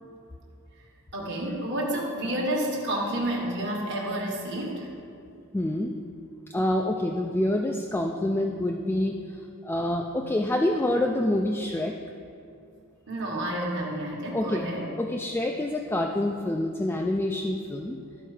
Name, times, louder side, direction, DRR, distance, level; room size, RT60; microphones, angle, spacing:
voice 1, 1.1-4.9 13.1-14.9, right 1 dB, 55° right, -3 dB, 1.3 m, -30 dB
voice 2, 5.5-5.9 6.5-9.1 9.6-11.9 14.3-14.6 15.0-18.0, left 1 dB, 10° left, 1 dB, 0.3 m, -26 dB
13.0 x 4.4 x 4.9 m, 2.5 s
head